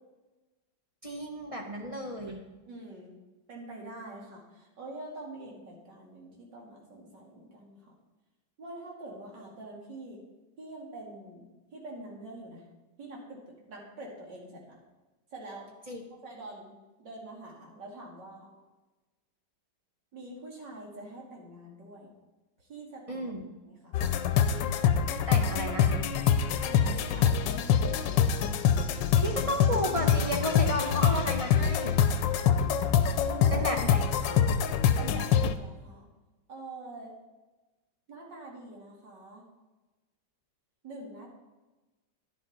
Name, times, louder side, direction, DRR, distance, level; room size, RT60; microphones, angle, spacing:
voice 1, 1.0-2.4 15.9-16.0 23.1-23.4 25.3-26.1 29.2-32.0 33.5-34.4, equal, 20° right, 0 dB, 1.2 m, -33 dB
voice 2, 2.6-3.1 3.5-7.9 8.6-10.2 10.6-11.5 11.7-12.6 13.0-13.4 13.7-14.8 15.3-15.7 16.1-18.5 20.1-22.1 22.6-23.3 23.7-24.0 26.6-28.6 33.3-33.7 35.0-36.1 36.5-37.1 38.1-39.4 40.8-41.3, right 2 dB, 75° right, -2 dB, 3.1 m, -45 dB
sound 1, 23.9-35.5, left 7 dB, 85° left, 1.3 m, -25 dB
11.0 x 9.8 x 4.2 m, 1.1 s
omnidirectional pair, 2.0 m